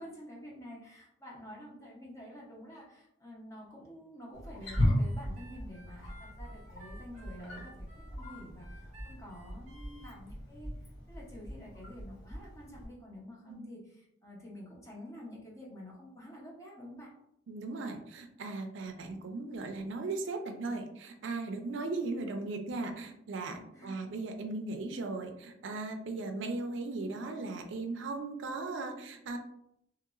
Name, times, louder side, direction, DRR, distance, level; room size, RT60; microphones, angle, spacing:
voice 1, 0.0-10.7 11.1-17.1 23.7-24.1, equal, 15° left, -4 dB, 0.7 m, -49 dB
Wild animals, 4.3-12.9, left 1 dB, 80° left, 1.1 m, -37 dB
Harmonica, 4.6-10.1, left 1 dB, 40° right, 0.7 m, -56 dB
voice 2, 17.5-29.4, right 3 dB, 70° right, 5 dB, 0.4 m, -37 dB
2.9 x 2.8 x 2.4 m, 0.77 s
head